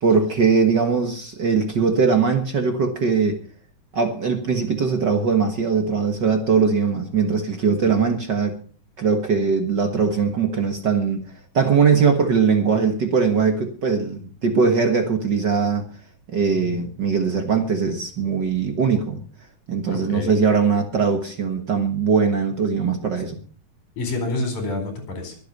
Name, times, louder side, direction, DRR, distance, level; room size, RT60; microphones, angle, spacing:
voice 1, 0.0-3.4 3.9-8.6 9.0-11.2 11.5-15.9 16.3-19.2 19.7-23.4, right 5 dB, 50° right, 6 dB, 1.3 m, -20 dB
voice 2, 16.5-16.8 19.9-20.3 24.0-25.4, left 2 dB, 60° left, 6 dB, 5.6 m, -28 dB
23.0 x 8.3 x 5.3 m, 0.43 s
omnidirectional pair, 3.9 m